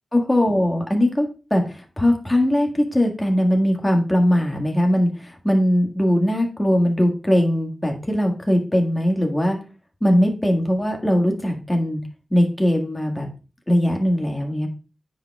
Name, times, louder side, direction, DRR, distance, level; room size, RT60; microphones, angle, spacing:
voice 1, 0.1-9.6 10.0-12.0 12.3-13.3 13.7-14.7, equal, 15° left, 2 dB, 1.7 m, -20 dB
9.7 x 4.9 x 2.3 m, 0.34 s
wide cardioid pair, 70°, 0 cm